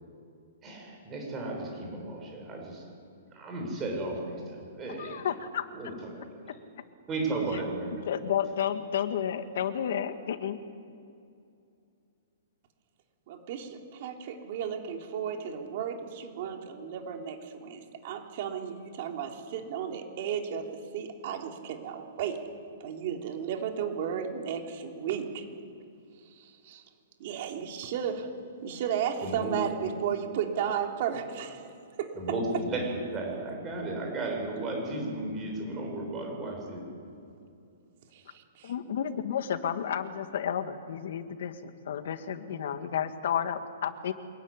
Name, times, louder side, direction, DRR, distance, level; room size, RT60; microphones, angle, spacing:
voice 1, 0.6-2.8 3.3-5.3 5.7-5.9 7.1-8.0 29.2-29.5 32.2-36.8, right 2 dB, 15° right, 1 dB, 6.9 m, -34 dB
voice 2, 5.0-5.7 8.1-10.6 38.6-44.1, left 9 dB, 55° left, 9 dB, 2.0 m, -31 dB
voice 3, 13.3-22.4 22.8-25.4 26.4-26.8 27.2-28.3 28.6-31.7 32.0-32.1 38.1-38.7, right 8 dB, 40° right, 3 dB, 3.4 m, -34 dB
25.5 x 21.5 x 10.0 m, 2.5 s
hypercardioid pair, 170°, 0 cm